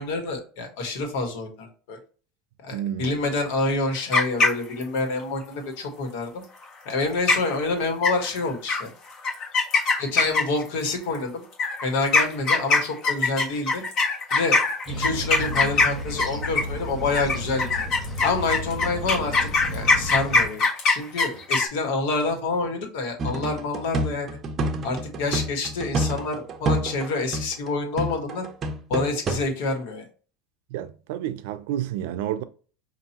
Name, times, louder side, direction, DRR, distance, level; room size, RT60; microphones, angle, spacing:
voice 1, 0.0-2.0 2.6-6.4 6.8-8.9 10.0-11.4 11.8-13.8 14.3-14.6 15.0-17.7 18.2-24.3 24.8-28.5 28.9-30.0, left 3 dB, 75° left, 1.5 m, -27 dB
voice 2, 2.7-3.1 30.7-32.4, right 11 dB, 75° right, 0.4 m, -30 dB
sound 1, 3.9-5.0 6.9-7.0 7.3-7.6 8.0-8.4 8.7-8.8 9.2-10.7 11.5-16.8 17.1-21.7, left 3 dB, 45° left, 1.5 m, -21 dB
sound 2, 14.9-20.5, equal, ahead, 1.5 m, -33 dB
sound 3, 23.2-27.1 27.3-27.7 28.0-29.5, right 1 dB, 30° right, 0.6 m, -28 dB
5.5 x 2.6 x 2.8 m
supercardioid pair, 135°, 0 cm